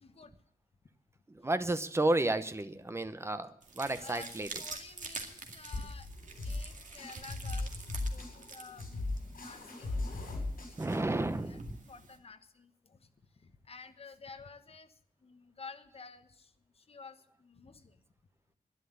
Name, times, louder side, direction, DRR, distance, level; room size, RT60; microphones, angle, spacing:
voice 1, 0.0-0.3 4.0-6.1 6.4-10.1 10.6-11.6 11.9-13.0 13.4-14.9 15.2-16.5 16.8-17.9, left 4 dB, 40° left, 8 dB, 1.2 m, -52 dB
voice 2, 1.3-4.6 10.8-11.8, right 2 dB, 15° right, 11 dB, 0.8 m, -32 dB
sound 1, 3.6-12.2, right 4 dB, 60° right, 2.1 m, -48 dB
sound 2, 5.7-11.7, left 2 dB, 75° left, 7.9 m, -39 dB
11.5 x 11.0 x 9.4 m, 0.67 s
wide cardioid pair, 170°, 15 cm